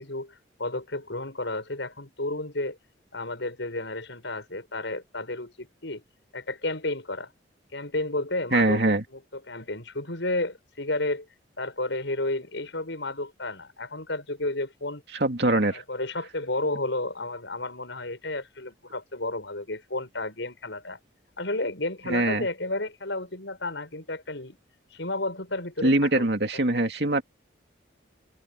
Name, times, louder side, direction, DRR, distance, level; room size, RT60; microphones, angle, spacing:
voice 1, 0.0-2.8 3.1-6.0 6.3-7.3 7.7-8.8 9.1-11.3 11.6-15.0 15.7-21.0 21.4-24.6 24.9-26.3 26.5-26.8, left 2 dB, 75° left, 6.2 m, -32 dB
voice 2, 8.5-9.0 15.2-15.8 22.1-22.5 25.8-27.2, right 2 dB, 60° right, 2.7 m, -23 dB
head